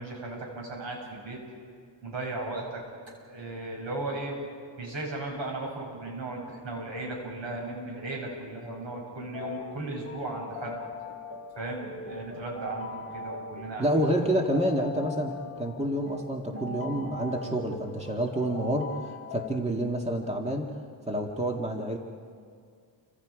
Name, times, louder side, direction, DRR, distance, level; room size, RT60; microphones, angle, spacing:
voice 1, 0.0-1.4 2.0-2.8 3.3-4.4 4.8-10.8 11.5-13.9 16.5-16.7, right 2 dB, 75° right, -1 dB, 7.7 m, -36 dB
sound 1, 9.3-19.5, left 3 dB, 30° left, 1.6 m, -41 dB
voice 2, 13.8-20.7 21.1-22.0, right 1 dB, 15° right, 1 dB, 2.0 m, -28 dB
30.0 x 25.5 x 5.1 m, 2.2 s
wide cardioid pair, 125°, 45 cm